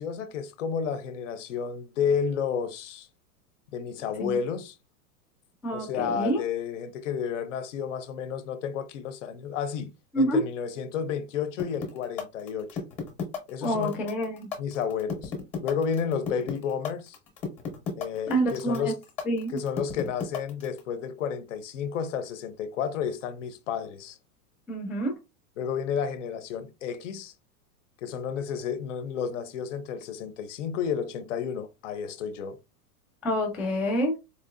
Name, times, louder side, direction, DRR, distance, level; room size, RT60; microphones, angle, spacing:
voice 1, 0.0-3.1 3.7-4.7 5.7-9.9 10.2-12.8 13.5-14.0 14.6-15.3 15.6-17.2 17.9-19.0 19.5-24.2 25.6-27.3 28.0-32.6, left 7 dB, 50° left, 0.6 m, -31 dB
voice 2, 5.6-6.4 10.1-10.4 13.6-14.5 18.3-18.9 19.2-19.6 24.7-25.1 33.2-34.1, equal, ahead, 0.3 m, -27 dB
sound 1, 11.6-20.8, left 6 dB, 15° left, 0.8 m, -33 dB
4.4 x 2.6 x 2.4 m
supercardioid pair, 175°, 47 cm